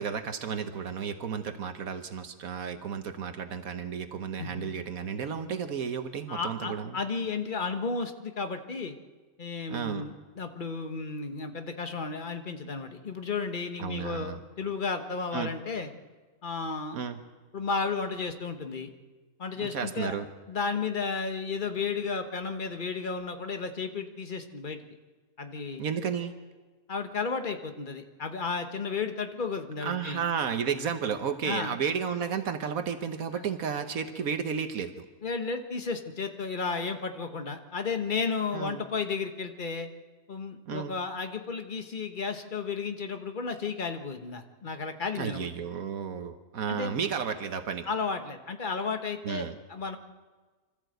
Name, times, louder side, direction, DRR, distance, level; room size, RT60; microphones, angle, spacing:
voice 1, 0.0-7.0 9.7-10.0 13.8-14.4 15.3-15.5 16.9-17.2 19.6-20.3 25.8-26.3 29.8-35.1 38.5-38.8 40.7-40.9 45.2-47.9 49.2-49.5, right 7 dB, 80° right, 8 dB, 1.4 m, -32 dB
voice 2, 4.4-4.7 6.3-8.9 9.4-15.9 16.4-17.0 17.5-18.9 19.4-20.1 20.5-24.8 25.4-25.9 26.9-30.2 31.4-31.8 33.3-33.4 35.2-39.9 40.3-45.5 46.7-46.9 47.9-50.0, left 4 dB, 35° left, 6 dB, 1.4 m, -33 dB
26.0 x 14.0 x 7.9 m, 1.3 s
omnidirectional pair, 1.5 m